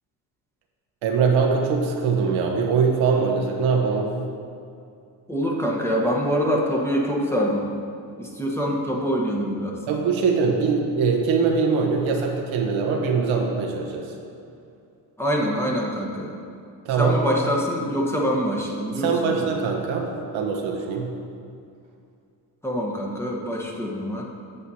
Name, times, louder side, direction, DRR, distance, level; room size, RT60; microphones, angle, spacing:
voice 1, 1.0-4.1 9.9-14.0 16.8-17.2 18.9-20.1 20.3-21.1, right 5 dB, 80° right, 1 dB, 1.1 m, -22 dB
voice 2, 5.3-7.7 8.2-9.7 15.2-16.3 17.0-19.5 22.6-24.2, equal, 5° left, -3 dB, 1.1 m, -25 dB
8.2 x 7.6 x 2.8 m, 2.5 s
supercardioid pair, 80°, 47 cm